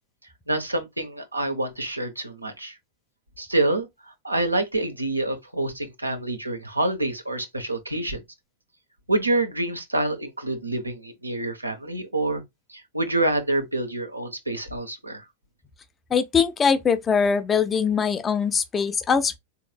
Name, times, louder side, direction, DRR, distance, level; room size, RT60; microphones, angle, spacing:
voice 1, 0.5-2.8 3.4-3.9 4.2-8.2 9.1-12.4 12.7-15.2, right 2 dB, 85° right, 0.7 m, -27 dB
voice 2, 16.1-19.4, left 6 dB, 20° left, 0.5 m, -22 dB
3.8 x 2.8 x 2.2 m
figure-of-eight pair, 90°, 0 cm